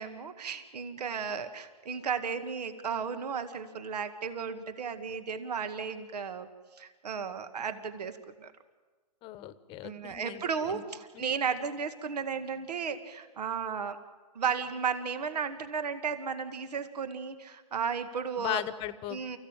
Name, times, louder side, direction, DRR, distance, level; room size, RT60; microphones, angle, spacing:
voice 1, 0.0-6.5 6.8-8.5 9.8-14.0 14.4-18.6 19.1-19.4, right 6 dB, 75° right, 9 dB, 2.0 m, -34 dB
voice 2, 9.2-10.4 10.7-10.8 18.4-19.2, left 14 dB, 25° left, 15 dB, 1.1 m, -37 dB
29.5 x 15.5 x 9.1 m, 1.3 s
hypercardioid pair, 145°, 21 cm